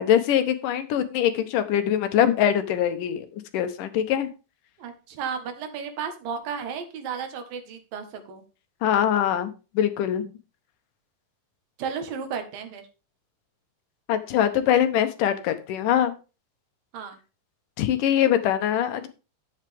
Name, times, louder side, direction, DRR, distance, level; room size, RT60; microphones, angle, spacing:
voice 1, 0.0-4.3 8.8-10.3 14.1-16.2 17.8-19.1, left 10 dB, 75° left, 9 dB, 2.6 m, -23 dB
voice 2, 4.8-8.4 11.8-12.9 16.9-17.2, right 6 dB, 90° right, 6 dB, 3.3 m, -33 dB
11.0 x 8.1 x 3.5 m, 0.31 s
omnidirectional pair, 3.9 m